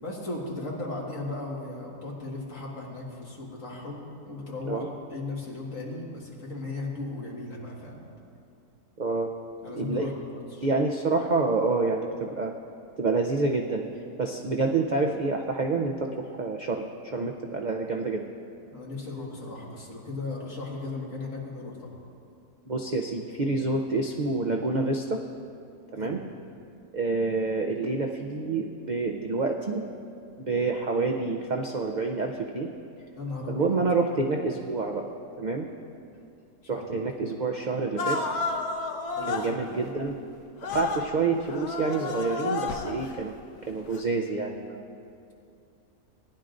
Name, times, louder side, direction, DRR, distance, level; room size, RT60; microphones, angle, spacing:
voice 1, 0.0-8.0 9.6-10.7 18.7-21.9 25.9-26.2 33.2-33.8 36.6-36.9 38.8-39.4, left 2 dB, 55° left, -3 dB, 2.1 m, -36 dB
voice 2, 9.0-9.3 9.8-10.1 10.6-12.5 13.0-13.8 14.2-18.3 22.7-25.2 25.9-26.2 26.9-29.8 30.4-32.7 33.5-35.1 35.4-35.7 36.7-38.2 39.3-40.2 40.6-43.3 43.7-44.8, right 3 dB, 65° right, 2 dB, 0.4 m, -28 dB
sound 1, 38.0-39.5 40.6-41.1 41.4-43.1 43.9-44.0, left 3 dB, 90° left, 1.3 m, -31 dB
19.0 x 10.5 x 2.6 m, 2.5 s
omnidirectional pair, 1.6 m